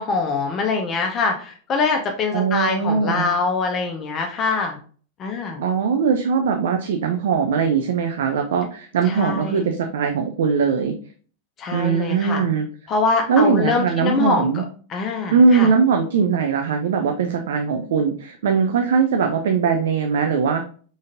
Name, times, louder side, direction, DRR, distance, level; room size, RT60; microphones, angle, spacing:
voice 1, 0.0-4.8 5.2-5.6 9.0-9.7 11.6-12.4 12.9-14.5 14.9-15.7, left 4 dB, 30° left, 2 dB, 0.6 m, -23 dB
voice 2, 2.3-3.3 5.6-11.0 11.7-12.7 13.3-14.6 15.3-20.6, right 5 dB, 60° right, 5 dB, 0.5 m, -20 dB
5.0 x 4.0 x 2.5 m, 0.42 s
figure-of-eight pair, 90°, 0 cm